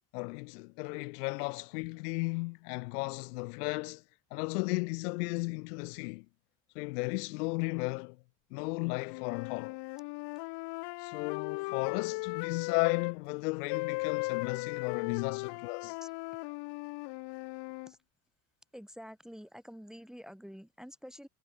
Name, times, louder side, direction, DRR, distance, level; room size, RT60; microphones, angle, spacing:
voice 1, 0.1-4.0 4.3-6.3 6.7-8.2 8.5-9.8 11.0-16.0, left 27 dB, 75° left, 2.6 m, -35 dB
sound 1, 9.0-13.2 13.7-17.9, left 26 dB, 60° left, 0.7 m, -37 dB
voice 2, 18.7-21.3, equal, ahead, 4.5 m, -48 dB
hypercardioid pair, 65°, 46 cm